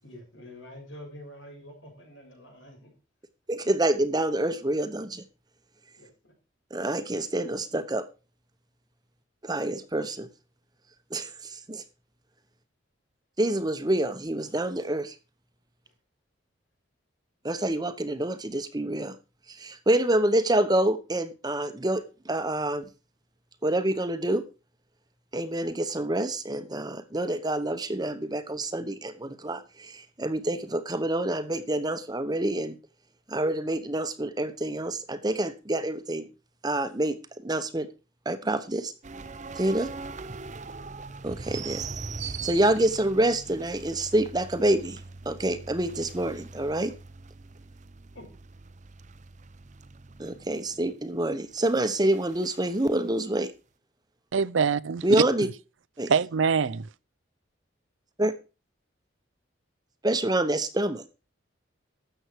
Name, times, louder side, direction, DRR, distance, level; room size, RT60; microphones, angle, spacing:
voice 1, 0.0-2.9 6.0-6.3 48.1-48.3, left 1 dB, 90° left, 6.8 m, -46 dB
voice 2, 3.5-5.2 6.7-8.0 9.4-10.3 11.1-11.8 13.4-15.1 17.4-19.1 19.5-22.8 23.6-24.4 25.3-32.8 33.3-36.2 36.6-37.9 38.2-38.9 39.5-39.9 41.2-41.8 42.2-46.9 50.2-53.5 55.0-55.5 56.0-56.1 58.2-58.3 60.0-61.0, right 1 dB, 20° right, 1.0 m, -27 dB
sound 1, 39.0-52.9, right 4 dB, 40° right, 0.7 m, -41 dB
voice 3, 54.3-55.0 56.1-56.9, right 6 dB, 80° right, 0.5 m, -24 dB
13.0 x 8.0 x 4.6 m
head